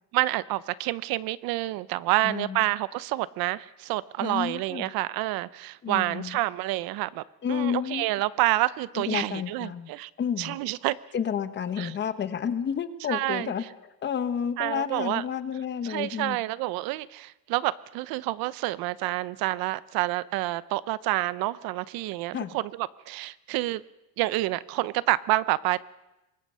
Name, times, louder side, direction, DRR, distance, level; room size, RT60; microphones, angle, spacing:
voice 1, 0.1-7.2 7.5-10.1 10.4-11.0 11.8-11.9 13.1-13.5 14.6-15.2 15.8-23.8 24.2-25.8, right 18 dB, 80° right, 18 dB, 0.8 m, -28 dB
voice 2, 2.2-2.6 4.2-4.9 5.8-6.3 7.4-8.1 8.9-9.9 10.2-10.6 11.1-13.6 14.0-16.4 22.3-22.6, left 8 dB, 30° left, 11 dB, 1.1 m, -30 dB
24.5 x 20.5 x 5.6 m, 1.0 s
cardioid pair, 160°, 35 cm